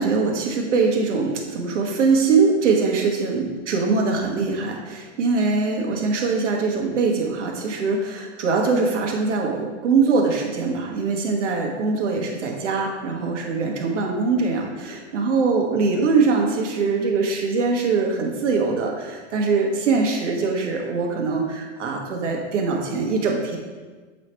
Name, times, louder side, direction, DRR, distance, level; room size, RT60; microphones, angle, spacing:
voice 1, 0.0-23.6, right 4 dB, 75° right, 1 dB, 1.4 m, -22 dB
7.6 x 3.3 x 4.4 m, 1.4 s
hypercardioid pair, 150°, 36 cm